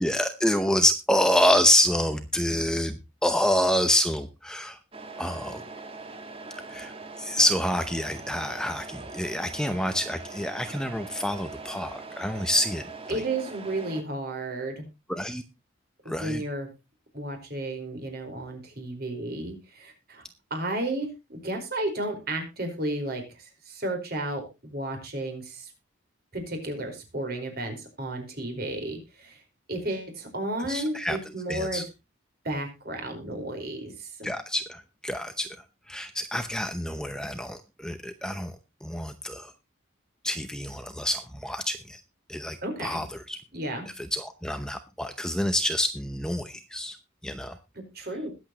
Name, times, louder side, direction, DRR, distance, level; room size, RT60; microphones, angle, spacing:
voice 1, 0.0-4.8 5.2-5.6 6.7-6.9 7.2-13.2 15.1-15.4 16.1-16.4 30.7-31.2 31.5-31.8 34.2-35.5 35.9-38.5 38.8-39.5 40.2-42.0 42.3-43.4 44.0-47.0 47.2-47.6, left 1 dB, 5° left, 8 dB, 0.7 m, -27 dB
Truck, 4.9-14.0, right 3 dB, 30° right, 1.5 m, -42 dB
voice 2, 13.1-14.9 16.0-16.7 17.1-20.2 20.5-25.7 26.3-29.4 29.7-31.8 32.4-34.3 42.6-43.0 43.5-43.9 47.7-48.3, right 1 dB, 50° right, 4 dB, 4.8 m, -33 dB
21.0 x 8.0 x 3.0 m, 0.26 s
head